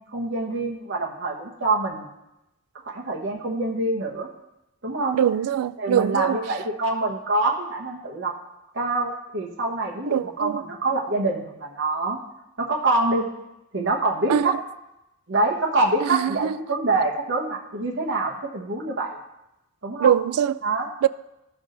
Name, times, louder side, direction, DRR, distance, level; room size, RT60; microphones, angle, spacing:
voice 1, 0.1-2.1 2.8-4.3 4.8-5.2 5.8-8.3 8.7-12.2 12.6-13.3 13.7-14.5 15.3-19.2 19.8-20.2 20.6-21.1, right 2 dB, 55° right, 1.1 m, -25 dB
voice 2, 5.1-6.4 10.1-10.6 14.3-14.6 16.0-16.5 20.0-20.6 21.0-21.1, right 9 dB, 90° right, 0.3 m, -22 dB
13.5 x 4.8 x 3.9 m
head